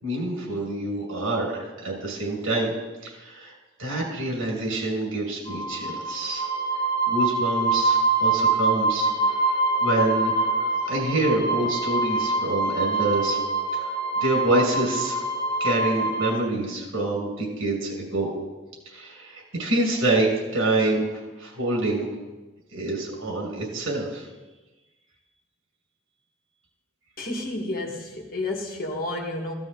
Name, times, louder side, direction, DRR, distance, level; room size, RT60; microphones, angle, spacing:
voice 1, 0.0-2.7 3.0-3.5 3.8-6.4 7.1-9.1 9.8-13.4 13.8-13.9 14.2-15.2 15.6-18.3 18.9-21.1 21.4-22.1 22.7-24.2, right 2 dB, 80° right, -1 dB, 6.4 m, -26 dB
sound 1, 5.5-16.3, right 3 dB, 20° left, 1.1 m, -25 dB
voice 2, 27.2-29.5, left 2 dB, 45° left, 0 dB, 2.2 m, -31 dB
16.0 x 15.0 x 4.0 m, 1.2 s
head